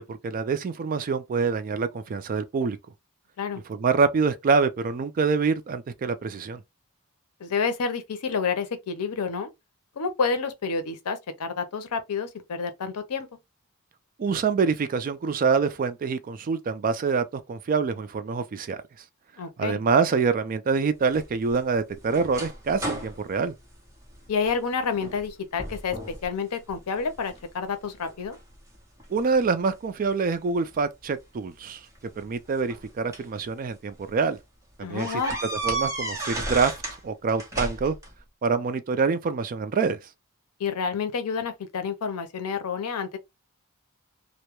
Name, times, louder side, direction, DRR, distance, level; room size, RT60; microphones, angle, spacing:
voice 1, 0.0-2.8 3.7-6.6 14.2-18.8 19.6-23.5 29.1-31.8 32.2-34.4 34.8-35.2 35.6-36.7 37.0-38.0 38.4-40.0, right 5 dB, 40° right, 0.3 m, -25 dB
voice 2, 7.4-9.5 10.0-13.3 19.4-19.8 24.3-28.4 34.8-35.4 40.6-43.2, left 5 dB, 90° left, 0.5 m, -29 dB
sound 1, 21.1-24.5 24.9-25.3 25.6-26.3 26.7-27.4 28.0-29.5 30.6-30.7 32.0-33.4 33.9-34.0 34.3-34.4 35.0-37.0 37.3-38.1, right 2 dB, 15° right, 0.8 m, -34 dB
2.2 x 2.0 x 2.9 m
head